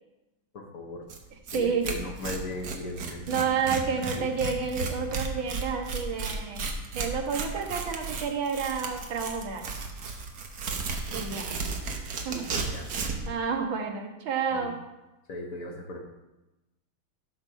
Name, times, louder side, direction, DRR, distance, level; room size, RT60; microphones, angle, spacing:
voice 1, 0.5-1.1 1.5-3.3 4.1-4.3 12.3-12.9 14.5-14.7 15.3-16.0, left 2 dB, 45° left, 1 dB, 1.5 m, -38 dB
Tearing, 1.1-1.2 1.5-1.6 1.8-13.3, right 4 dB, 55° right, 1.4 m, -34 dB
voice 2, 1.5-1.9 3.3-6.6 6.9-9.6 11.1-11.5 12.3-12.4 13.3-14.8, right 5 dB, 70° right, 3 dB, 1.9 m, -30 dB
12.5 x 4.4 x 6.1 m, 1.0 s
omnidirectional pair, 2.3 m